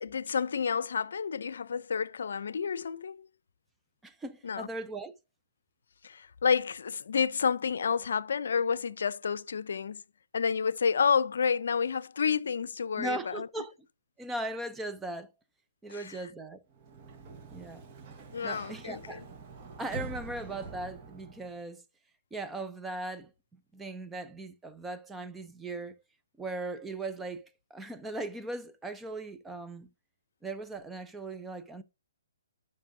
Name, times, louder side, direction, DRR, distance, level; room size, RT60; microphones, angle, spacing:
voice 1, 0.0-3.3 4.4-4.7 6.0-10.0 10.3-13.5 15.9-16.2 18.3-19.3, left 6 dB, 70° left, 0.5 m, -30 dB
voice 2, 4.0-5.2 13.0-13.7 14.2-15.3 15.8-16.6 17.5-17.9 18.4-19.2 19.8-21.8 22.3-23.3 23.7-25.9 26.4-29.9 30.4-31.8, right 2 dB, 5° right, 0.5 m, -38 dB
Sliding door, 16.7-21.6, right 4 dB, 30° right, 1.3 m, -45 dB
11.5 x 5.4 x 2.7 m
hypercardioid pair, 155°, 0 cm